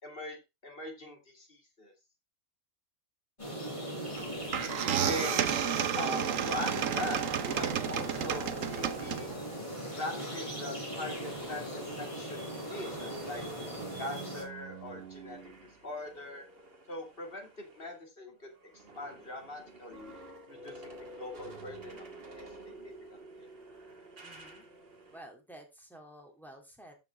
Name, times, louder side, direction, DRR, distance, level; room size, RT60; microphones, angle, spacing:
voice 1, 0.0-1.9 5.0-5.4 6.0-9.3 10.0-13.4 14.0-15.4 15.8-16.5 16.9-18.5 18.9-20.1 20.5-22.1 22.4-23.5, left 1 dB, 40° left, 3 dB, 2.7 m, -41 dB
sound 1, 3.4-14.4, equal, 20° left, 3.8 m, -39 dB
sound 2, 4.2-4.3 4.5-9.5, right 9 dB, 70° right, 1.2 m, -31 dB
sound 3, 9.6-18.0 18.3-25.2, right 3 dB, 45° right, 1.9 m, -50 dB
voice 2, 24.2-24.6 25.1-26.9, right 1 dB, ahead, 1 dB, 2.6 m, -52 dB
13.0 x 6.0 x 3.4 m, 0.24 s
omnidirectional pair, 1.4 m